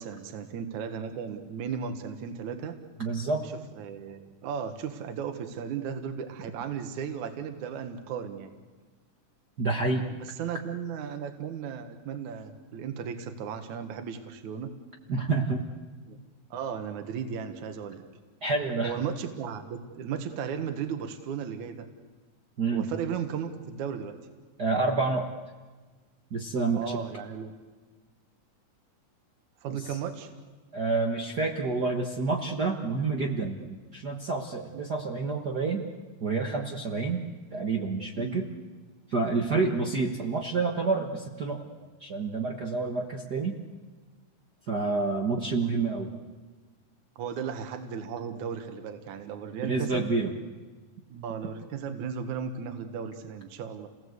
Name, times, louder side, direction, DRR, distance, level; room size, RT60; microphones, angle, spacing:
voice 1, 0.0-2.8 3.4-8.5 10.2-14.7 16.1-16.2 16.5-18.0 18.8-21.9 22.7-24.2 26.7-27.5 29.6-30.3 38.2-38.4 39.5-39.8 47.2-50.1 51.1-53.9, right 7 dB, 65° right, 7 dB, 2.8 m, -35 dB
voice 2, 3.0-3.4 9.6-10.0 15.1-15.6 18.4-19.0 22.6-22.9 24.6-25.3 26.3-26.8 29.7-29.8 30.7-35.8 36.2-37.2 37.5-38.4 39.1-41.6 42.0-43.6 44.7-46.1 49.6-50.3, right 3 dB, 50° right, 2 dB, 1.2 m, -28 dB
30.0 x 18.5 x 8.1 m, 1.4 s
omnidirectional pair, 3.8 m